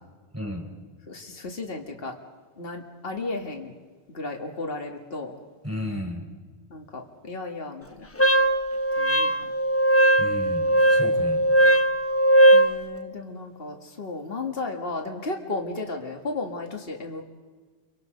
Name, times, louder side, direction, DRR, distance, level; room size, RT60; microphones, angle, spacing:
voice 1, 0.3-0.7 5.6-6.3 10.2-11.4, left 1 dB, 15° right, 1 dB, 4.6 m, -33 dB
voice 2, 1.1-2.1 2.6-3.7 4.1-5.3 6.7-8.1 9.0-9.5 12.5-17.2, left 3 dB, 60° left, 2 dB, 2.3 m, -34 dB
Wind instrument woodwind instrument, 8.2-12.8, right 1 dB, 15° left, 0.7 m, -19 dB
28.5 x 25.0 x 5.3 m, 1.4 s
omnidirectional pair, 1.1 m